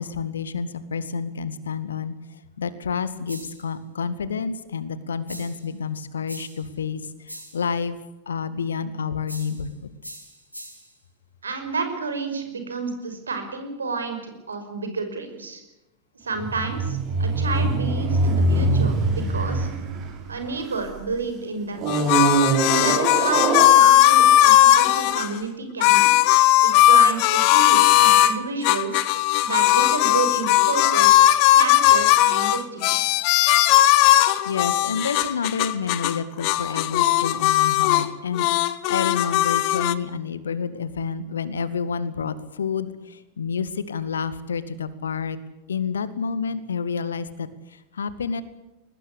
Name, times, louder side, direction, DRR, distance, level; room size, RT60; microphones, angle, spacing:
voice 1, 0.0-8.0 8.3-10.0 34.5-45.4 45.7-48.4, left 6 dB, 70° left, 14 dB, 2.0 m, -29 dB
sound 1, 3.3-3.7 5.3-5.7 6.3-6.7 7.3-7.7 9.3-9.7 10.0-10.9, equal, 90° left, 6.7 m, -41 dB
voice 2, 11.4-15.6 16.2-19.7 20.3-22.3 22.8-26.3 26.6-29.0 29.4-31.3 31.5-33.0, right 4 dB, 75° right, 7 dB, 5.6 m, -30 dB
sound 2, 16.3-21.0 21.8-24.3 25.0-25.1, right 3 dB, 35° right, 6.8 m, -23 dB
sound 3, 21.9-25.3 25.8-28.3 28.6-36.2 36.4-38.1 38.3-39.9, left 14 dB, 45° left, 1.3 m, -18 dB
22.5 x 20.5 x 8.5 m, 0.97 s
figure-of-eight pair, 90°, 0 cm